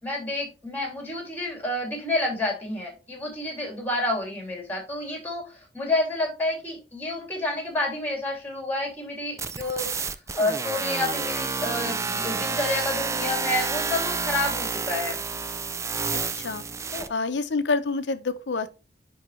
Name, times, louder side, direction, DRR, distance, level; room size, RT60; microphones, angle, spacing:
voice 1, 0.0-15.2 16.9-17.1, left 2 dB, 10° left, 2.6 m, -29 dB
sound 1, 9.4-17.1, right 4 dB, 15° right, 0.3 m, -29 dB
voice 2, 17.1-18.7, left 3 dB, 80° left, 0.7 m, -27 dB
9.8 x 3.9 x 3.1 m
head